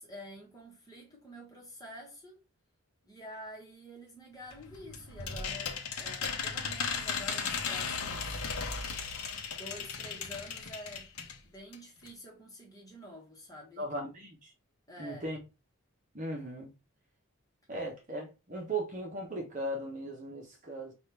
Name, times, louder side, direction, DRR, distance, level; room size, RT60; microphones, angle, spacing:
voice 1, 0.0-2.4 3.0-8.4 9.5-11.1 11.4-13.9 14.9-15.4, equal, 15° left, 1.2 m, -48 dB
sound 1, 4.5-11.4 11.7-11.8 12.1-12.2, left 5 dB, 80° left, 0.8 m, -36 dB
voice 2, 13.8-14.5 15.0-15.4 16.1-16.7 17.7-20.9, right 1 dB, 35° right, 1.0 m, -37 dB
5.1 x 2.5 x 3.3 m
head